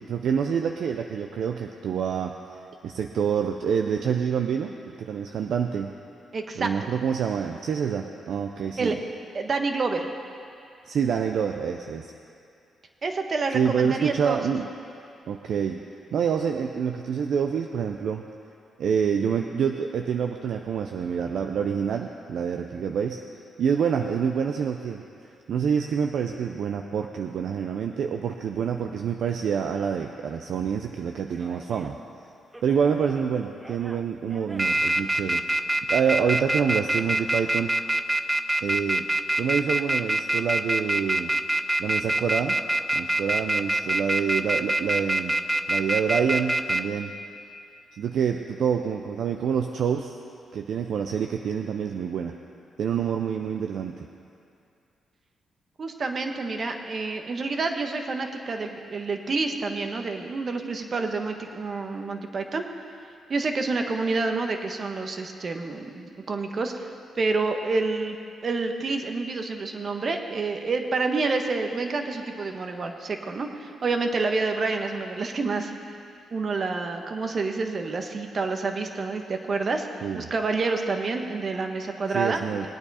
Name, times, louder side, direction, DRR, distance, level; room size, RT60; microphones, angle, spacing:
voice 1, 0.0-2.3 2.8-4.7 5.0-5.9 6.6-9.0 10.9-12.1 13.5-14.7 15.3-15.8 16.1-18.2 18.8-23.2 23.6-25.0 25.5-31.9 32.6-37.7 38.6-39.1 39.4-41.3 41.8-42.6 42.9-45.4 45.7-47.1 47.9-50.2 50.5-52.3 52.8-54.0 80.0-80.2 82.1-82.7, right 7 dB, 70° right, 4 dB, 0.5 m, -27 dB
voice 2, 6.3-6.7 8.8-9.0 9.3-10.1 13.0-14.4 55.8-62.6 63.3-66.9 67.1-68.2 68.4-75.7 76.3-82.7, right 3 dB, 50° right, 5 dB, 1.2 m, -28 dB
sound 1, 31.5-31.9 32.5-33.2 33.7-34.0 34.3-46.8, right 1 dB, 15° right, 0.6 m, -24 dB
19.5 x 9.0 x 4.2 m, 2.5 s
supercardioid pair, 60°, 0 cm